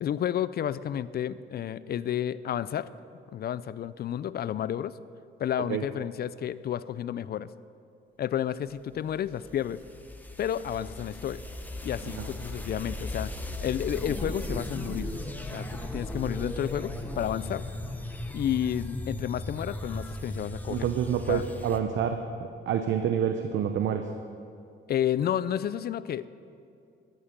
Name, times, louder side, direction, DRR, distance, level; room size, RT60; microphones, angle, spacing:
voice 1, 0.0-2.9 3.3-5.0 5.4-7.5 8.2-9.8 10.4-11.4 11.8-13.3 13.6-15.1 15.5-17.6 18.3-20.9 21.3-21.4 24.9-26.3, left 10 dB, 55° left, 17 dB, 0.5 m, -31 dB
sound 1, 8.9-21.8, left 1 dB, 10° left, 1.2 m, -37 dB
voice 2, 20.7-24.1, right 8 dB, 70° right, 7 dB, 0.8 m, -28 dB
14.0 x 11.5 x 5.2 m, 2.5 s
cardioid pair, 90°, 20 cm